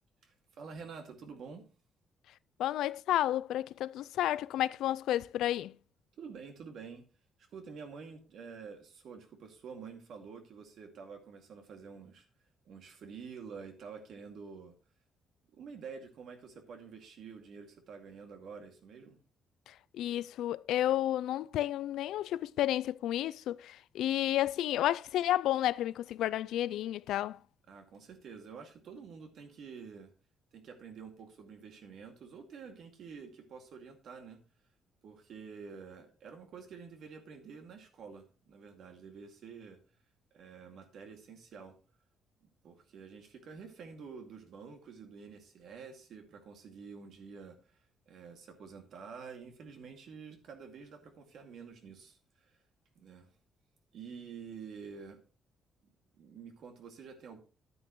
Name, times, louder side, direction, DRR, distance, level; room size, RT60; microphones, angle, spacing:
voice 1, 0.2-1.7 6.2-7.0 7.5-12.3 12.7-14.7 15.5-19.2 27.7-30.1 30.5-34.4 35.0-39.8 40.3-41.8 42.4-47.7 48.1-52.6 53.0-53.3 53.9-55.2 56.2-57.4, right 5 dB, 60° right, 2.2 m, -48 dB
voice 2, 2.6-5.7 19.7-27.4, left 13 dB, 85° left, 0.4 m, -31 dB
11.5 x 9.3 x 3.1 m
cardioid pair, 155°, 0 cm